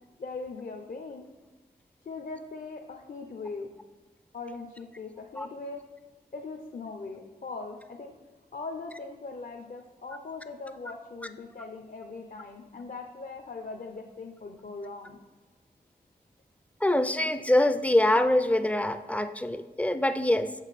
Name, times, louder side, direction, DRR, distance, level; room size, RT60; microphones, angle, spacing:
voice 1, 0.2-1.3 2.0-3.7 4.3-5.8 6.3-8.1 8.5-15.2, left 3 dB, 55° left, 3 dB, 0.6 m, -40 dB
voice 2, 16.8-20.5, left 1 dB, 10° left, 10 dB, 0.4 m, -24 dB
7.2 x 7.1 x 4.1 m, 1.3 s
wide cardioid pair, 120°, 17 cm